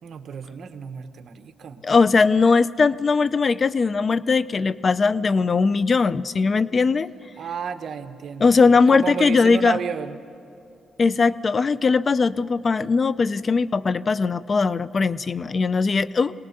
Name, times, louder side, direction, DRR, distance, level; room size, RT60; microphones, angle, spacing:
voice 1, 0.0-1.8 7.4-10.2, right 6 dB, 65° right, 8 dB, 1.2 m, -32 dB
voice 2, 1.8-7.1 8.4-9.8 11.0-16.3, left 4 dB, 40° left, 17 dB, 0.5 m, -20 dB
23.5 x 18.5 x 6.8 m, 2.7 s
cardioid pair, 85°, 0 cm